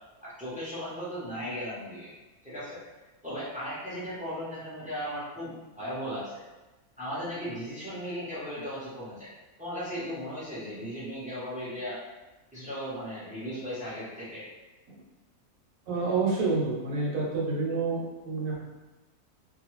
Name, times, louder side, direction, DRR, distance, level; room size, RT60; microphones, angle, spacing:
voice 1, 0.2-2.1 2.4-2.8 3.2-6.4 7.0-9.3 9.6-12.0 12.5-14.5, equal, 10° right, -10 dB, 0.5 m, -36 dB
voice 2, 15.9-18.7, right 3 dB, 65° right, -4 dB, 1.1 m, -28 dB
2.5 x 2.3 x 3.0 m, 1.1 s
omnidirectional pair, 1.6 m